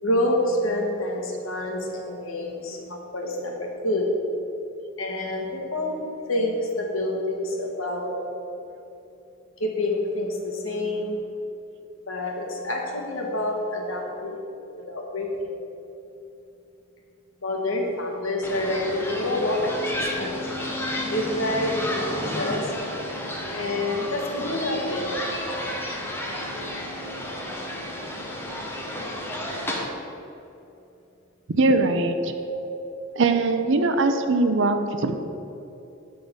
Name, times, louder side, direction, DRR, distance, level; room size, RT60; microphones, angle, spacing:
voice 1, 0.0-4.1 5.0-6.0 6.3-8.1 9.6-11.2 12.1-14.4 14.7-15.5 17.4-20.5 21.1-22.7 23.5-25.1 32.4-32.6, left 1 dB, 70° left, 0 dB, 1.4 m, -27 dB
sound 1, 18.4-29.9, left 1 dB, 10° left, 0.9 m, -32 dB
voice 2, 31.5-32.3 33.2-35.1, right 3 dB, 60° right, 7 dB, 0.6 m, -21 dB
9.1 x 3.9 x 7.2 m, 2.9 s
head